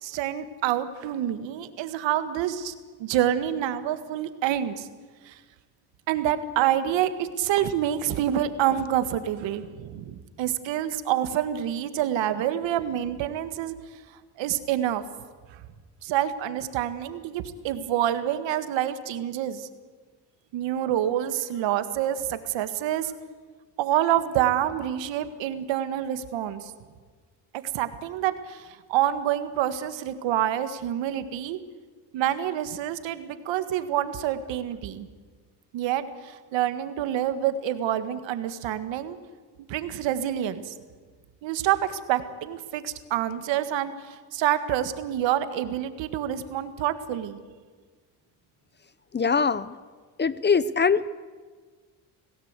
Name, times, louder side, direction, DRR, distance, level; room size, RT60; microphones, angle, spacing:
voice 1, 0.0-2.7 3.0-4.9 5.2-5.4 6.1-13.7 14.4-15.0 15.5-15.6 16.0-19.7 20.5-23.1 23.8-26.7 27.7-31.6 32.1-35.1 35.7-39.2 39.7-40.7 41.4-47.4, right 11 dB, 85° right, 11 dB, 1.8 m, -27 dB
voice 2, 49.1-49.7 50.2-51.1, left 5 dB, 25° left, 17 dB, 0.7 m, -22 dB
27.5 x 17.5 x 8.2 m, 1.5 s
cardioid pair, 110°, 43 cm